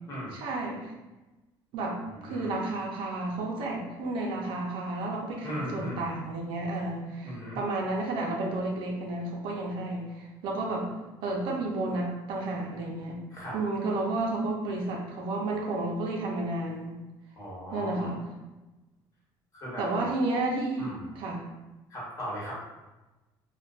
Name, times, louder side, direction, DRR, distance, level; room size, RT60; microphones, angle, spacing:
voice 1, 0.3-0.9 1.7-10.9 11.2-13.2 13.5-16.9 17.7-18.2 19.8-21.4, right 2 dB, 70° right, -1 dB, 0.5 m, -31 dB
voice 2, 2.1-2.5 5.4-6.1 7.2-7.6 13.3-13.6 17.4-18.1 19.5-20.0 20.8-21.2 21.9-22.6, equal, 35° left, -6 dB, 1.1 m, -38 dB
2.5 x 2.2 x 2.3 m, 1.1 s
cardioid pair, 135°, 9 cm